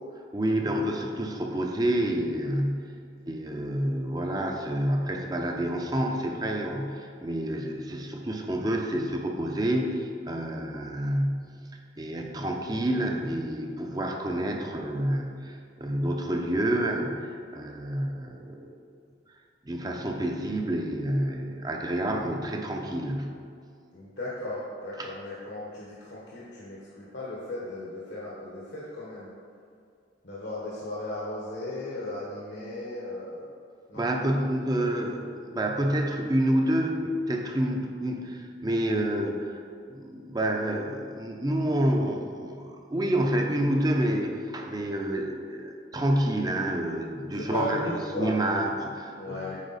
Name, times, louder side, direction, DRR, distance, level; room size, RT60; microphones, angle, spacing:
voice 1, 0.3-2.9 3.2-11.5 12.0-18.7 19.6-23.3 25.0-25.1 33.9-39.6 39.9-47.8 48.1-49.5, right 1 dB, 20° right, 2 dB, 0.6 m, -28 dB
voice 2, 23.9-29.3 30.2-33.5 33.9-34.1 47.3-48.3 49.2-49.6, left 1 dB, 70° left, -7 dB, 1.2 m, -36 dB
8.2 x 4.5 x 4.0 m, 2.4 s
head